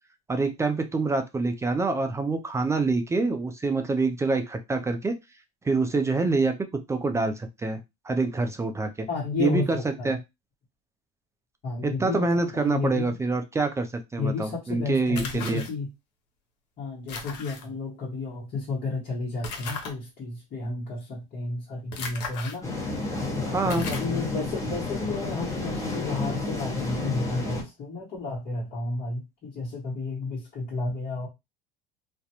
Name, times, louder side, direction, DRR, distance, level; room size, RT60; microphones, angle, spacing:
voice 1, 0.3-5.1 5.6-6.5 6.9-7.8 8.0-9.1 9.4-9.8 10.0-10.2 11.8-13.9 14.1-15.6 23.5-23.9, right 3 dB, 15° right, 0.4 m, -26 dB
voice 2, 9.1-10.1 11.6-13.2 14.2-15.9 16.8-22.7 23.6-31.3, left 3 dB, 40° left, 1.1 m, -32 dB
sound 1, 15.1-15.7 17.1-17.6 19.4-19.9 21.9-22.6 23.1-23.2 23.7-24.1, left 4 dB, 80° left, 0.8 m, -36 dB
sound 2, 22.6-27.6, left 2 dB, 15° left, 0.8 m, -31 dB
2.4 x 2.1 x 2.8 m
supercardioid pair, 105°, 21 cm